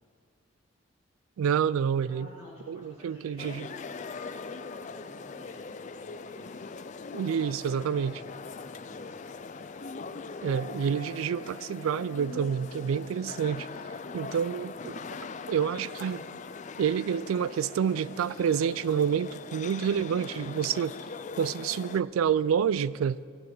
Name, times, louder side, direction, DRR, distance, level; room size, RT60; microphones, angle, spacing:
voice 1, 1.4-2.3 2.7-3.7 7.1-8.2 10.4-13.7 14.1-16.2 16.8-20.9 21.4-23.2, right 8 dB, 80° right, 0.3 m, -28 dB
voice 2, 2.1-6.8 7.9-9.7, equal, 15° right, 2.1 m, -52 dB
sound 1, 3.4-22.0, left 4 dB, 35° left, 0.4 m, -41 dB
14.0 x 10.0 x 6.0 m
head